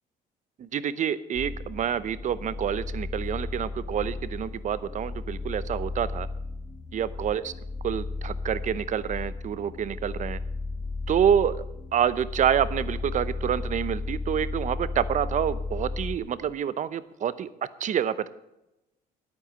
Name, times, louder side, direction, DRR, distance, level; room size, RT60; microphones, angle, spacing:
voice 1, 0.6-6.3 6.9-7.5 7.8-10.4 11.1-11.6 11.9-17.5 17.8-18.3, right 9 dB, 45° right, 16 dB, 0.8 m, -27 dB
sound 1, 1.3-16.2, left 3 dB, 25° left, 1.6 m, -34 dB
11.0 x 9.2 x 7.6 m, 0.91 s
cardioid pair, 110°, 17 cm